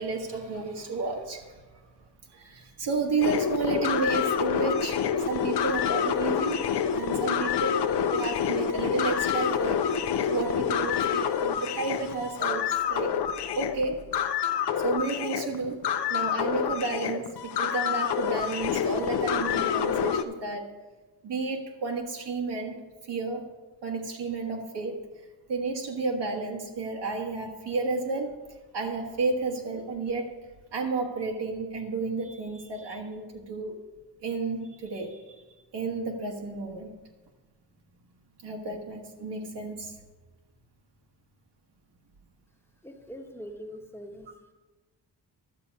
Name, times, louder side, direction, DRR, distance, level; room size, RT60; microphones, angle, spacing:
voice 1, 0.0-1.6 2.3-6.6 6.9-13.2 13.6-14.1 14.8-15.8 16.1-20.7 21.2-22.8 23.0-23.5 23.8-25.1 25.5-28.3 28.7-30.3 30.7-33.8 34.2-35.4 35.7-36.9 38.4-40.0, right 3 dB, 75° right, 0 dB, 1.6 m, -32 dB
sound 1, 3.2-20.2, left 8 dB, 70° left, 0.8 m, -27 dB
voice 2, 42.8-44.3, equal, 5° left, 3 dB, 1.1 m, -42 dB
12.0 x 7.0 x 5.3 m, 1.2 s
wide cardioid pair, 120°, 42 cm